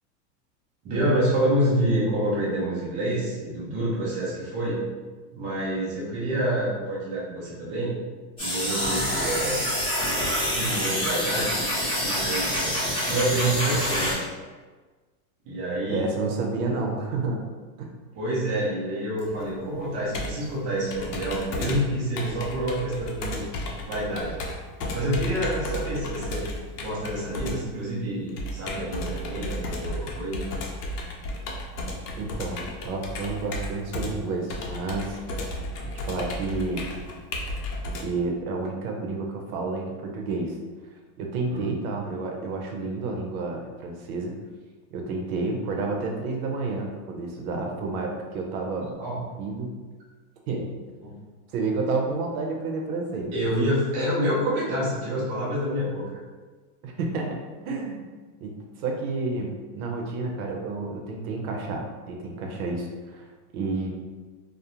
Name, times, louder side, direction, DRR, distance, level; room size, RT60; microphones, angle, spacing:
voice 1, 0.8-4.8 5.3-8.0 8.4-9.6 10.5-11.6 12.0-12.6 13.0-14.3 15.4-16.1 18.1-23.5 23.8-24.4 24.9-30.4 41.5-41.7 49.0-49.2 51.0-51.1 53.3-56.0, right 1 dB, 20° right, -7 dB, 0.3 m, -27 dB
sound 1, 8.4-14.1, equal, 10° left, 1.0 m, -26 dB
voice 2, 15.9-17.4 17.8-17.9 32.2-35.2 35.8-36.9 38.0-40.6 41.2-44.3 44.9-49.0 49.4-49.7 50.5-50.7 51.5-53.5 56.8-58.0 58.4-63.3 63.5-63.9, right 3 dB, 65° right, 1 dB, 0.7 m, -30 dB
Computer keyboard, 19.2-38.0, left 1 dB, 80° left, 0.7 m, -34 dB
2.3 x 2.1 x 2.8 m, 1.4 s
supercardioid pair, 130°, 46 cm